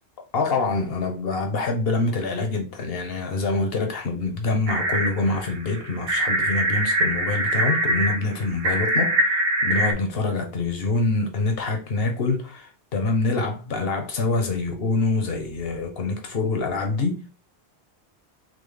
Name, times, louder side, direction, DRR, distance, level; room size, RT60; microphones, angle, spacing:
voice 1, 0.3-17.2, left 3 dB, 60° left, 1.1 m, -25 dB
sound 1, 4.7-9.9, right 1 dB, 60° right, 0.9 m, -24 dB
4.0 x 3.0 x 3.3 m
omnidirectional pair, 1.1 m